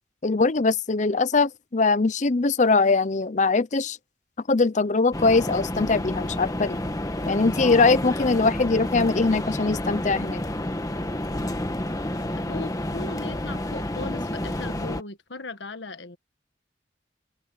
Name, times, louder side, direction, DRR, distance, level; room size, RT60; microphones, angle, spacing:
voice 1, 0.2-4.0 4.5-6.8 7.3-10.4, left 3 dB, 40° left, 0.7 m, -22 dB
sound 1, 5.1-15.0, left 1 dB, 20° left, 1.4 m, -29 dB
voice 2, 12.3-16.2, left 3 dB, 80° left, 1.5 m, -38 dB
head